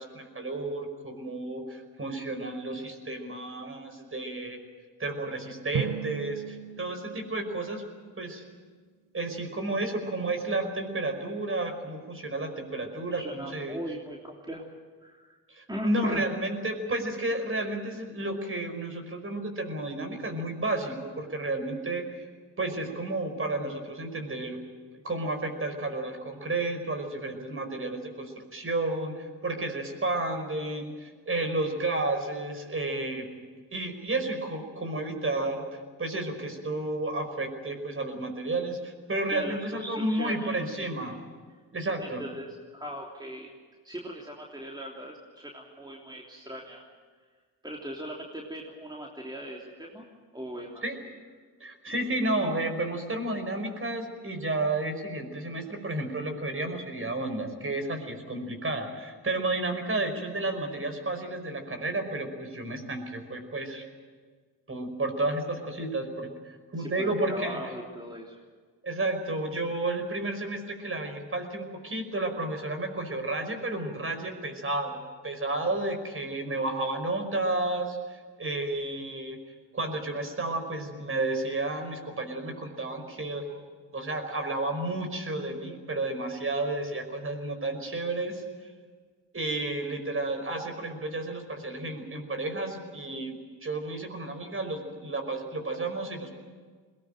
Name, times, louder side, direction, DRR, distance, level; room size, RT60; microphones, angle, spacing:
voice 1, 0.0-4.6 5.0-7.8 8.2-8.4 9.1-13.8 15.5-22.2 22.6-24.6 24.9-33.4 33.7-41.2 41.7-42.2 50.8-51.0 51.6-63.8 64.7-67.6 68.8-75.0 75.2-79.4 79.7-83.6 83.9-88.7 89.3-96.4, right 2 dB, 30° right, 6 dB, 5.3 m, -32 dB
Drum, 5.7-8.4, right 11 dB, 50° right, 0.8 m, -37 dB
voice 2, 13.1-14.6 15.0-15.4 15.7-16.3 39.3-40.6 42.0-42.5 42.7-43.5 43.8-46.8 47.6-50.0 50.3-50.8 66.8-68.4, equal, 10° right, -2 dB, 3.4 m, -39 dB
21.5 x 19.0 x 9.1 m, 1.5 s
supercardioid pair, 65°, 45 cm